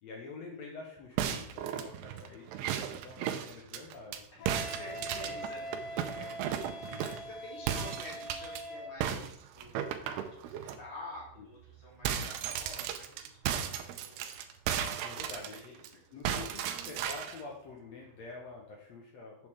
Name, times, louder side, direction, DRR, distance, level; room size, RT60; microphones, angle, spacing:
voice 1, 0.0-4.3 4.7-5.3 6.2-6.4 6.8-7.0 11.4-11.5 15.0-15.8 16.1-19.5, left 3 dB, 80° left, 0 dB, 1.5 m, -47 dB
sound 1, 1.2-4.2 4.5-7.3 7.7-8.6 9.0-10.8 11.2-11.3 11.6-15.9 16.2-17.4, right 9 dB, 80° right, 2.6 m, -35 dB
voice 2, 4.3-6.1 7.0-13.3 13.8-14.4 15.2-16.0, left 1 dB, 40° left, -6 dB, 4.5 m, -49 dB
Wind instrument woodwind instrument, 4.4-8.9, equal, 60° left, 4.1 m, -42 dB
8.4 x 7.7 x 3.6 m, 0.67 s
omnidirectional pair, 4.8 m